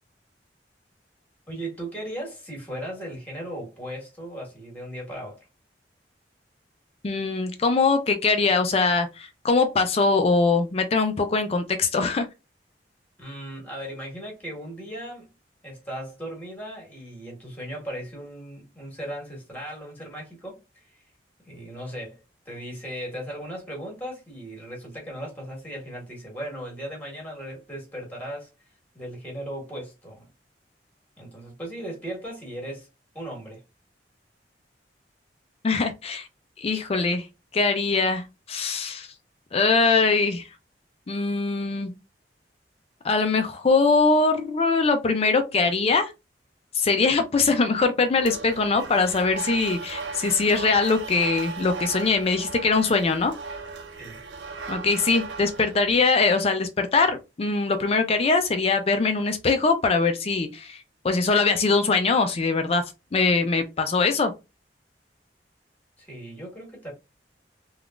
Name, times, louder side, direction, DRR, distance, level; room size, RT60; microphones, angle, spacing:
voice 1, 1.5-5.4 13.2-15.3 15.6-20.6 21.4-28.5 28.9-30.3 31.2-32.9 33.1-33.6 54.0-54.2 66.0-66.9, right 1 dB, 10° left, 1.5 m, -37 dB
voice 2, 7.0-12.3 35.6-36.3 36.6-37.3 37.5-39.1 39.5-40.4 41.1-41.9 43.0-46.1 46.7-53.3 54.7-62.8 63.1-64.3, left 4 dB, 35° left, 0.4 m, -22 dB
sound 1, 48.1-56.0, right 4 dB, 85° right, 0.7 m, -36 dB
3.6 x 2.4 x 2.4 m
head